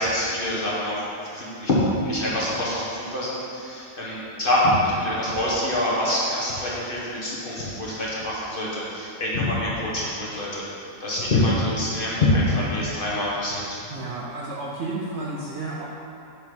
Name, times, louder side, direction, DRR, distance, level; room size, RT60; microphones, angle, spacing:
voice 1, 0.0-1.8 2.0-10.6 11.0-13.8, left 1 dB, 40° left, -7 dB, 1.0 m, -25 dB
voice 2, 13.9-15.9, right 2 dB, 65° right, -4 dB, 0.7 m, -32 dB
6.1 x 3.8 x 4.7 m, 2.6 s
omnidirectional pair, 1.7 m